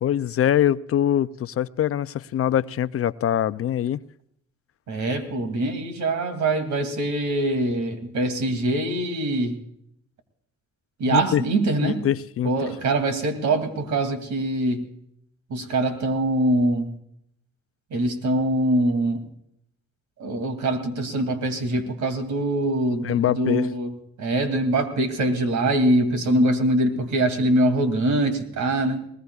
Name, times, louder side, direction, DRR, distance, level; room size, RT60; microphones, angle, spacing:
voice 1, 0.0-4.0 11.1-11.4 11.8-12.7 23.0-23.7, left 11 dB, 50° left, 0.5 m, -23 dB
voice 2, 4.9-9.6 11.0-12.1 12.4-14.8 15.5-16.9 17.9-19.2 20.2-23.9 24.2-29.1, right 1 dB, 70° right, 2.7 m, -23 dB
20.5 x 20.0 x 2.4 m
cardioid pair, 90°, 30 cm